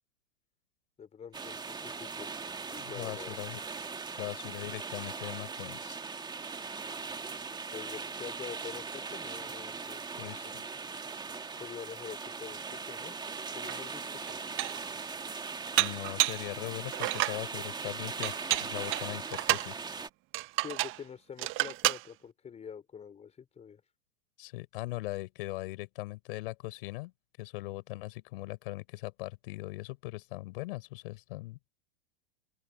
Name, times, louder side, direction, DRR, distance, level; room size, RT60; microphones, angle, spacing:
voice 1, 1.0-2.4 2.7-3.4 7.7-10.5 11.5-13.2 13.5-14.4 20.6-23.8, left 7 dB, 20° left, 4.6 m, -46 dB
sound 1, 1.3-20.1, right 4 dB, 15° right, 2.6 m, -40 dB
voice 2, 2.8-3.6 4.2-6.0 10.2-10.6 15.8-19.8 24.4-27.1 27.4-31.6, left 21 dB, 60° left, 7.1 m, -40 dB
Dishes pots and pans, 13.7-13.8 14.3-14.9 15.8-16.5 16.9-17.4 18.2-19.7 20.3-21.0 21.4-22.0, right 20 dB, 40° right, 1.3 m, -30 dB
open air
hypercardioid pair, 115°, 32 cm